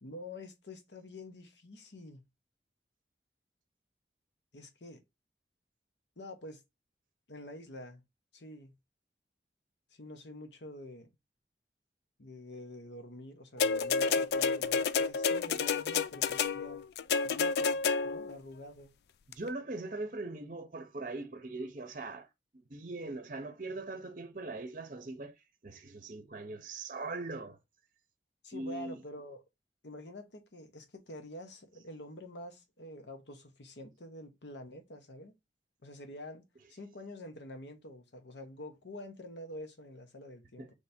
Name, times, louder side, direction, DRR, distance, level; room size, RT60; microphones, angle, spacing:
voice 1, 0.0-2.2 4.5-5.0 6.2-6.6 7.3-8.0 8.3-8.7 9.9-11.1 12.2-16.8 17.2-18.9 28.4-29.4 29.8-35.3 35.8-36.4 36.7-40.7, left 1 dB, 85° left, 1.0 m, -47 dB
sound 1, 13.6-18.3 19.3-19.4, left 5 dB, 65° left, 0.3 m, -30 dB
voice 2, 19.3-22.3 22.5-27.6 28.5-29.0 40.6-40.7, right 2 dB, 45° right, 0.6 m, -41 dB
3.3 x 3.2 x 4.1 m
head